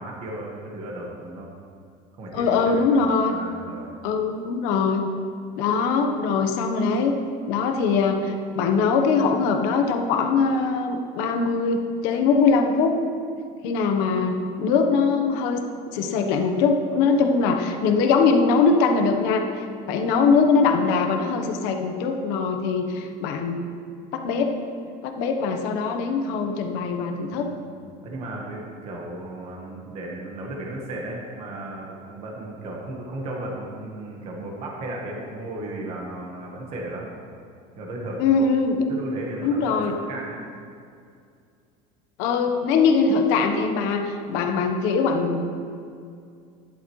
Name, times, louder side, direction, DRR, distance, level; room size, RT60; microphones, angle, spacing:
voice 1, 0.0-1.5 2.2-2.9 3.2-3.9 27.3-27.7 28.0-37.1 37.7-38.2 38.9-40.4, right 1 dB, 35° right, -2 dB, 1.3 m, -35 dB
voice 2, 2.3-3.4 4.0-5.0 5.6-7.2 7.5-12.9 13.6-15.6 15.9-23.6 24.1-24.6 25.0-27.5 38.2-38.9 39.4-39.9 42.2-45.4, left 4 dB, 70° left, 4 dB, 1.1 m, -22 dB
12.0 x 10.5 x 3.1 m, 2.3 s
cardioid pair, 175°, 17 cm